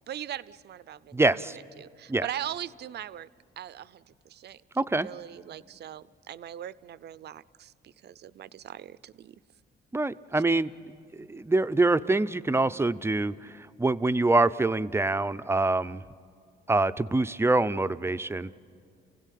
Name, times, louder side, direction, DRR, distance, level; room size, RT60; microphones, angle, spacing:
voice 1, 0.1-1.5 1.8-3.3 3.6-4.6 5.0-9.3, right 11 dB, 55° right, 16 dB, 0.5 m, -40 dB
voice 2, 1.1-1.6 2.1-2.3 4.8-5.1 9.9-10.7 11.1-13.5 13.8-16.0 16.7-18.6, right 2 dB, 10° right, 13 dB, 0.5 m, -25 dB
30.0 x 16.5 x 8.4 m, 2.2 s
cardioid pair, 90°, 20 cm